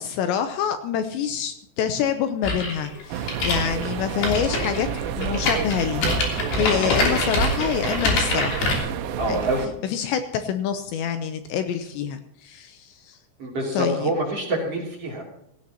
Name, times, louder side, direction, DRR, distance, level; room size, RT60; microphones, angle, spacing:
voice 1, 0.0-4.9 5.2-8.7 9.3-9.5 9.8-13.2 13.7-14.1, left 8 dB, 80° left, 8 dB, 2.8 m, -26 dB
sound 1, 2.4-8.8, left 3 dB, 55° left, 4.8 m, -25 dB
sound 2, 3.1-9.7, right 8 dB, 85° right, 3.5 m, -29 dB
voice 2, 9.2-9.7 13.4-15.2, right 1 dB, 35° right, -2 dB, 3.2 m, -26 dB
17.0 x 16.0 x 2.9 m, 0.79 s
omnidirectional pair, 5.6 m